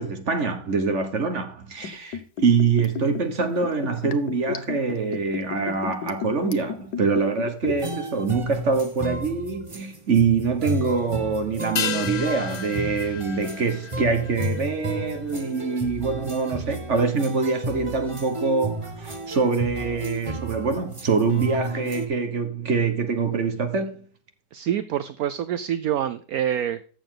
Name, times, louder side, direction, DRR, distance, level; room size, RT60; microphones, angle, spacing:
voice 1, 0.0-24.0, right 4 dB, 45° right, 1.5 m, -24 dB
Liquid, 1.8-8.0 8.2-8.3, left 7 dB, 85° left, 1.5 m, -33 dB
sound 1, 7.7-22.1, right 1 dB, 20° right, 1.2 m, -32 dB
sound 2, 11.8-16.5 16.7-16.8, left 8 dB, 55° left, 1.2 m, -34 dB
voice 2, 24.5-26.8, right 10 dB, 70° right, 1.0 m, -26 dB
13.5 x 7.0 x 3.8 m
omnidirectional pair, 1.8 m